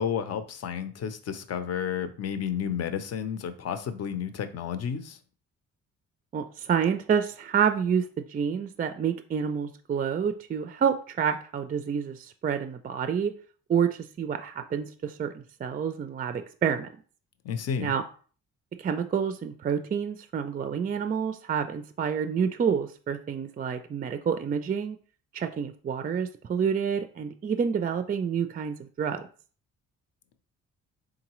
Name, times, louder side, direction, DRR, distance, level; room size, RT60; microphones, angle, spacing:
voice 1, 0.0-5.2 17.4-17.9, left 8 dB, 55° left, 10 dB, 0.7 m, -31 dB
voice 2, 6.3-13.3 13.7-16.9 17.8-18.0 18.8-25.0 25.3-29.3, right 7 dB, 30° right, 9 dB, 0.4 m, -28 dB
3.8 x 3.7 x 3.0 m, 0.42 s
cardioid pair, 90°, 30 cm